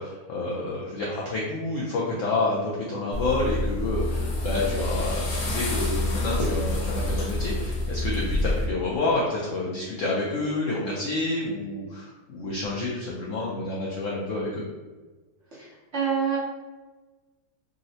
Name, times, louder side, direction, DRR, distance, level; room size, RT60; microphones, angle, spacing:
voice 1, 0.0-14.6, left 2 dB, 90° left, -4 dB, 0.6 m, -29 dB
sound 1, 3.1-8.7, left 1 dB, 65° left, 1.0 m, -27 dB
voice 2, 15.5-16.4, right 6 dB, 55° right, -7 dB, 0.9 m, -27 dB
3.7 x 2.0 x 2.6 m, 1.3 s
omnidirectional pair, 1.9 m